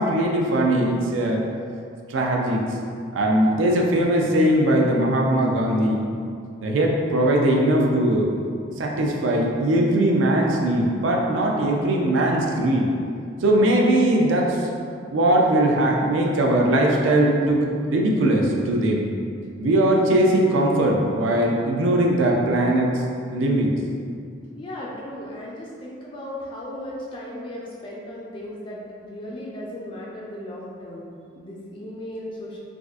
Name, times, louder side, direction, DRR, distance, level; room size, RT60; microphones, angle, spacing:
voice 1, 0.0-1.5 2.1-2.7 3.1-6.0 6.6-8.3 8.8-12.9 13.4-14.6 15.1-19.1 19.6-23.0 23.3-23.7, right 1 dB, 80° right, 0 dB, 0.4 m, -20 dB
voice 2, 24.6-28.8 29.1-32.6, left 1 dB, 25° left, -4 dB, 0.3 m, -36 dB
3.5 x 2.4 x 2.4 m, 2.3 s
head